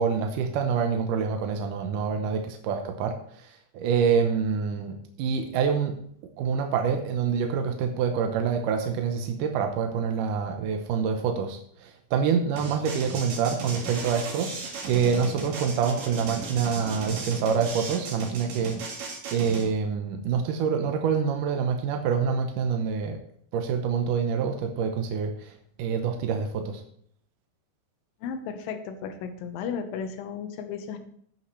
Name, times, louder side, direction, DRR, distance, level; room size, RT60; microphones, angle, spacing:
voice 1, 0.0-3.2 3.7-5.9 6.4-14.5 14.8-18.8 19.3-23.2 23.5-25.3 25.8-26.8, right 6 dB, 80° right, 5 dB, 1.9 m, -26 dB
sound 1, 12.6-19.7, right 3 dB, 60° right, 3.3 m, -36 dB
voice 2, 28.2-31.0, left 6 dB, 70° left, 7 dB, 2.5 m, -34 dB
13.5 x 8.5 x 3.2 m, 0.65 s
omnidirectional pair, 4.9 m